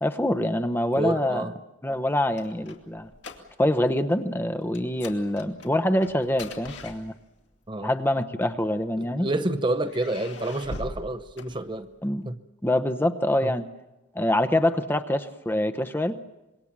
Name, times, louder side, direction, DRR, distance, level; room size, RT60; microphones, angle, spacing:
voice 1, 0.0-1.5 1.8-3.1 3.6-7.1 7.8-9.3 12.0-12.2 12.6-13.7 14.1-16.2, left 1 dB, 10° left, 10 dB, 0.8 m, -25 dB
voice 2, 1.0-1.5 7.7-7.9 9.0-11.9 12.2-12.4 13.4-13.5, right 2 dB, 25° right, 10 dB, 0.8 m, -28 dB
sound 1, 1.9-3.8 4.1-4.3 4.7-7.5 8.4-9.3 9.8-12.1, left 2 dB, 65° left, 2.6 m, -42 dB
26.0 x 22.5 x 7.4 m, 1.0 s
head